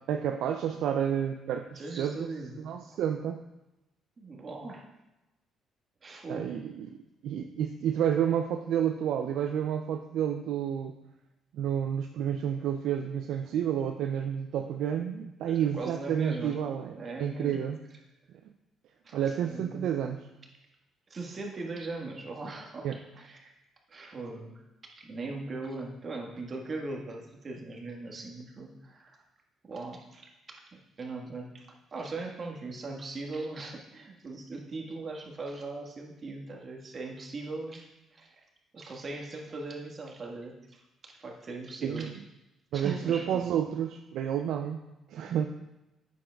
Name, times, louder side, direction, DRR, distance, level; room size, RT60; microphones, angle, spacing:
voice 1, 0.0-2.3 2.6-3.4 6.3-6.9 7.2-11.0 11.5-17.8 19.1-20.3 22.8-23.0 41.8-42.1 42.7-44.8 45.1-45.5, right 9 dB, 75° right, 5 dB, 0.4 m, -30 dB
voice 2, 1.7-2.7 4.2-4.9 6.0-6.6 15.5-16.6 16.9-17.6 19.0-19.9 21.1-22.9 23.1-23.5 23.9-24.6 25.0-29.2 29.7-30.3 31.0-31.7 31.9-37.9 38.1-38.4 38.7-42.1 42.7-43.4 45.2-45.5, right 3 dB, 45° right, 1 dB, 1.5 m, -39 dB
8.9 x 7.0 x 2.3 m, 0.95 s
supercardioid pair, 60°, 0 cm